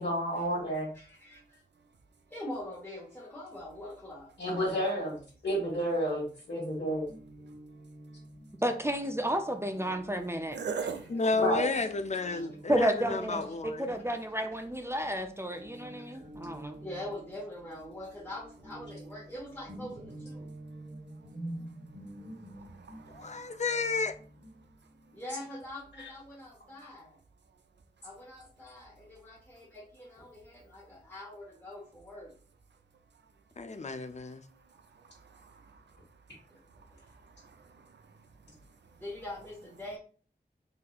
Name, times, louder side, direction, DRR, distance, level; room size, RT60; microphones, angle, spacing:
voice 1, 0.0-0.9 4.4-7.1 11.4-11.6 26.0-26.1, equal, 75° left, 1.4 m, -31 dB
voice 2, 0.9-1.6 2.3-4.8 12.3-12.5 13.5-13.6 16.8-20.5 25.1-27.2 28.0-32.3 36.5-36.7 39.0-40.0, left 1 dB, 10° left, 1.2 m, -44 dB
Guitar, 7.0-14.7 15.0-25.5, right 1 dB, 50° right, 1.2 m, -48 dB
voice 3, 8.6-10.6 12.7-16.8, right 1 dB, 15° right, 0.4 m, -31 dB
voice 4, 10.5-11.1 15.6-16.2 16.7-16.8 20.4-23.7 25.0-25.2 26.6-27.2 27.5-27.6 29.5-29.7 32.7-32.8 33.1-33.3 33.8-39.0, right 6 dB, 80° right, 0.4 m, -46 dB
voice 5, 11.1-13.9 23.1-24.1 33.6-34.4, left 3 dB, 40° left, 0.4 m, -31 dB
4.0 x 2.7 x 2.3 m
wide cardioid pair, 55°, 18 cm